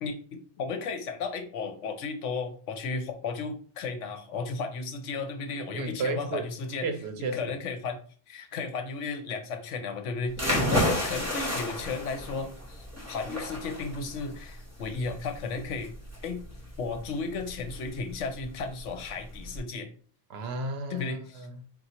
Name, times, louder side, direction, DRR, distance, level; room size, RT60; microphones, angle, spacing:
voice 1, 0.0-6.9 7.3-8.0 8.3-15.9 16.2-16.4 16.8-19.9 20.9-21.5, left 4 dB, 80° left, 1.0 m, -34 dB
voice 2, 5.7-6.5 6.8-7.5 10.6-10.9 20.3-21.5, right 3 dB, 65° right, 0.8 m, -33 dB
sound 1, 10.3-19.6, left 1 dB, 15° right, 1.0 m, -32 dB
3.8 x 2.4 x 4.2 m
omnidirectional pair, 1.2 m